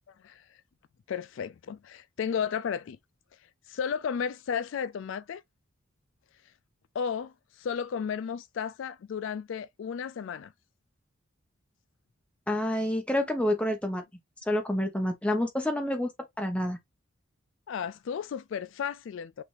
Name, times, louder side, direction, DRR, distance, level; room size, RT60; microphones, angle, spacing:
voice 1, 1.1-3.0 3.7-5.4 6.9-10.5 17.7-19.4, left 7 dB, 65° left, 0.3 m, -33 dB
voice 2, 12.5-14.0 14.5-16.1 16.4-16.8, left 1 dB, 5° left, 1.0 m, -28 dB
6.0 x 2.6 x 3.2 m
head